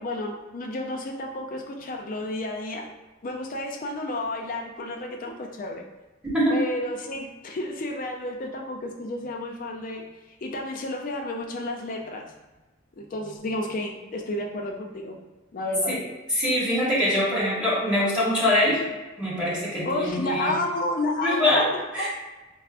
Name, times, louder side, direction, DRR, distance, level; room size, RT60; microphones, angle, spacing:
voice 1, 0.0-2.9 3.2-5.8 6.5-10.0 10.4-12.2 13.0-15.2 15.5-16.0 19.8-22.1, left 1 dB, 45° left, 2 dB, 0.4 m, -31 dB
voice 2, 16.4-18.8 19.2-20.5 21.2-21.7 21.9-22.1, left 1 dB, 5° right, -8 dB, 0.8 m, -23 dB
4.3 x 2.0 x 2.4 m, 1.1 s
head